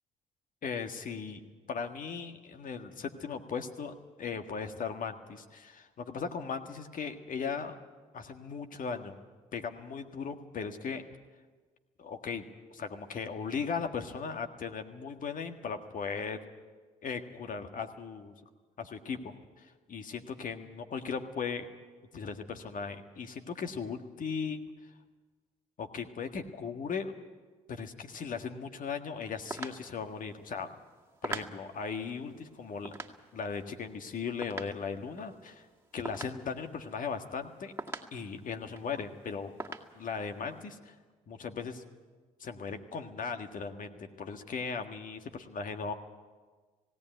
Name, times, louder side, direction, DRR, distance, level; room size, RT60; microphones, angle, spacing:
voice 1, 0.6-1.4 1.7-7.7 8.1-9.2 9.5-11.0 12.0-12.5 12.7-16.4 17.0-18.4 18.8-21.7 22.1-24.6 25.8-27.1 27.7-30.7 31.2-32.9 33.3-35.6 35.9-37.7 38.1-39.5 40.0-40.9 41.3-41.8 42.4-45.9, left 5 dB, 55° left, 6 dB, 1.7 m, -37 dB
sound 1, 29.4-37.4 37.8-39.0 39.3-39.4 39.6-40.6, right 3 dB, 15° right, 2.0 m, -44 dB
18.0 x 17.5 x 9.2 m, 1.4 s
hypercardioid pair, 50°, 17 cm